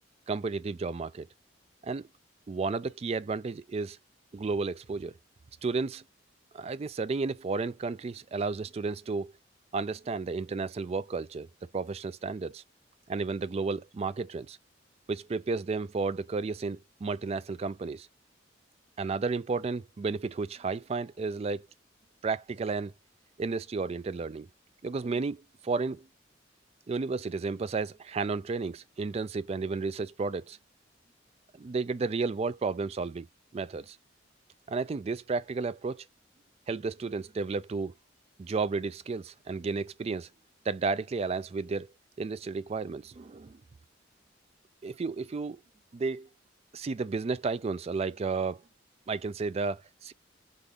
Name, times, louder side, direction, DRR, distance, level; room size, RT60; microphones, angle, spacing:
voice 1, 0.3-1.3 1.8-2.1 2.5-4.0 4.3-5.1 5.6-6.0 6.5-9.3 9.7-11.5 11.7-12.6 13.1-14.6 15.1-18.1 19.0-21.7 22.2-22.9 23.4-24.5 24.8-26.1 26.9-30.6 31.6-33.3 33.5-34.0 34.7-36.1 36.7-37.9 38.4-40.3 40.7-41.9 42.2-43.6 44.8-45.6 45.9-46.3 46.7-48.6 49.1-50.1, right 4 dB, 35° right, 0.3 m, -32 dB
3.7 x 3.5 x 3.4 m
head